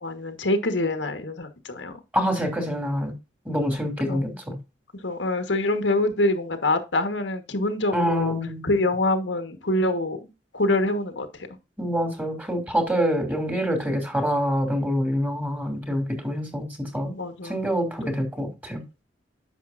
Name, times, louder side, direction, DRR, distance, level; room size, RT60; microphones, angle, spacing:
voice 1, 0.0-2.0 4.1-4.4 5.0-8.3 8.6-11.5 17.0-17.6, left 2 dB, 85° left, 1.5 m, -25 dB
voice 2, 2.1-3.2 3.4-4.6 7.9-8.7 11.8-17.1 17.4-18.8, equal, 10° right, 3.0 m, -26 dB
10.5 x 6.8 x 2.6 m
head